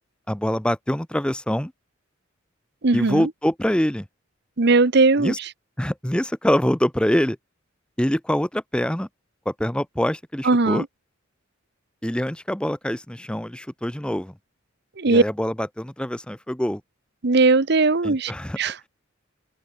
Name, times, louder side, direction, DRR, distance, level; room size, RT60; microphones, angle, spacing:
voice 1, 0.3-1.7 2.9-4.1 5.2-5.4 5.8-7.4 8.0-9.1 9.5-10.8 12.0-14.3 15.1-16.8 18.0-18.6, equal, 5° left, 0.7 m, -24 dB
voice 2, 2.8-3.3 4.6-5.5 10.4-10.9 15.0-15.2 17.2-18.3 18.6-18.9, right 3 dB, 55° right, 1.0 m, -19 dB
open air
head